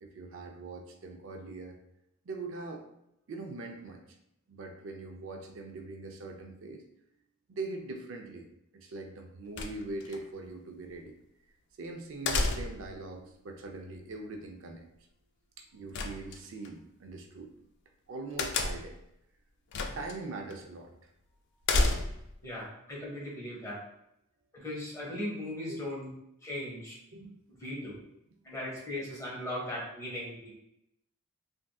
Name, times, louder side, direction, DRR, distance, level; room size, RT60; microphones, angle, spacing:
voice 1, 0.0-1.8 2.3-2.8 3.3-4.0 4.5-6.8 7.5-8.5 8.7-11.1 11.8-14.9 15.6-17.5 18.1-19.0 19.9-20.9 25.7-25.8 27.1-27.4, right 3 dB, 65° right, 4 dB, 0.4 m, -42 dB
sound 1, 9.6-10.2 12.3-12.9 15.9-16.7 18.4-19.0 19.7-20.2 20.5-20.6 21.6-22.3, left 2 dB, 55° left, 0.4 m, -30 dB
voice 2, 22.4-23.8 24.5-26.1 26.4-26.9 27.5-28.0 28.4-30.6, left 1 dB, 15° left, -5 dB, 1.0 m, -38 dB
3.4 x 2.6 x 2.3 m, 0.81 s
head